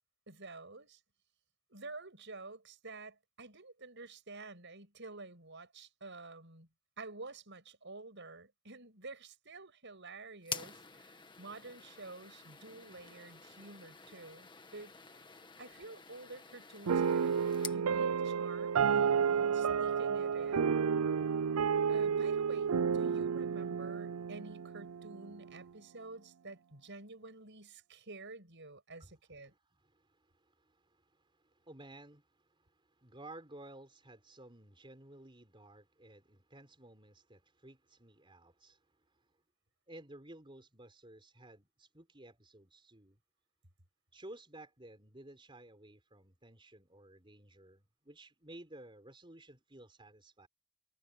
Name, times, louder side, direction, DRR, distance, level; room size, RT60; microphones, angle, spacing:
voice 1, 0.3-1.0 1.7-6.7 7.0-14.9 15.6-17.3 17.7-20.7 21.9-29.5, right 3 dB, 55° right, 7.9 m, -50 dB
sound 1, 10.4-17.8, left 6 dB, 20° left, 1.6 m, -48 dB
sound 2, 16.9-25.4, right 6 dB, 80° right, 0.5 m, -31 dB
voice 2, 29.5-39.3 39.9-43.2 44.1-50.5, right 1 dB, 20° right, 4.3 m, -55 dB
head